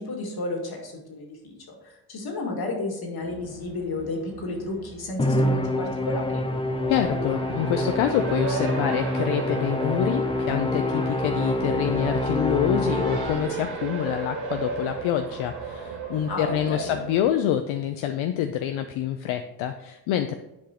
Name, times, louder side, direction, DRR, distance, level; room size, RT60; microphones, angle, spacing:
voice 1, 0.0-6.4 16.3-17.0, left 2 dB, 50° left, 1 dB, 2.2 m, -32 dB
Race car auto racing, 3.2-17.3, right 5 dB, 50° right, 1.5 m, -36 dB
Musical instrument, 5.2-13.8, left 1 dB, 10° left, 0.5 m, -26 dB
voice 2, 6.9-20.4, left 10 dB, 75° left, 7 dB, 0.6 m, -26 dB
10.5 x 4.8 x 2.9 m, 0.94 s
supercardioid pair, 75°, 48 cm